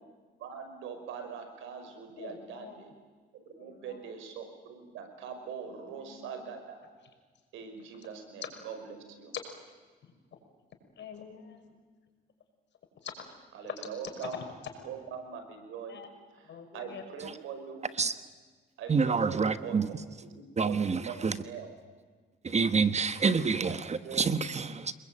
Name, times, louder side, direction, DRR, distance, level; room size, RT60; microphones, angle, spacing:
voice 1, 0.4-2.9 3.6-6.8 7.5-9.3 13.5-14.4 14.8-16.0 16.3-17.9 18.8-20.8 21.1-21.7 23.6-24.3, right 7 dB, 90° right, 5.3 m, -42 dB
voice 2, 2.2-2.8 3.5-4.1 5.6-5.7 6.0-6.4 7.9-8.1 10.3-10.4 11.0-11.8 13.0-13.3 13.6-13.7 14.2-14.3 15.9-16.1 16.4-17.0, left 8 dB, 65° left, 5.8 m, -45 dB
voice 3, 18.9-19.9 20.6-21.4 22.4-24.9, right 5 dB, 35° right, 1.3 m, -27 dB
28.0 x 21.0 x 8.9 m
cardioid pair, 90°, 20 cm